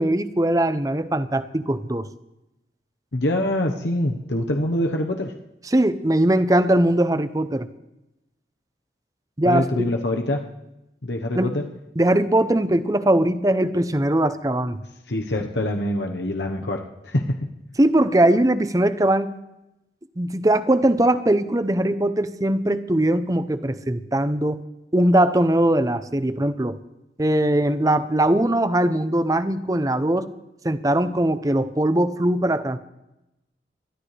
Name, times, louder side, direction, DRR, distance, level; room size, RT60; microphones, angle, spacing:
voice 1, 0.0-2.1 5.7-7.7 9.4-9.9 11.3-11.5 12.0-14.8 17.8-19.4 20.2-24.6 24.9-26.8 27.2-30.3 30.6-32.8, right 1 dB, 20° right, 12 dB, 0.7 m, -20 dB
voice 2, 3.1-5.3 9.4-10.4 11.0-11.7 15.1-17.4, left 1 dB, 85° left, 2 dB, 1.1 m, -24 dB
21.5 x 13.5 x 3.4 m, 0.91 s
head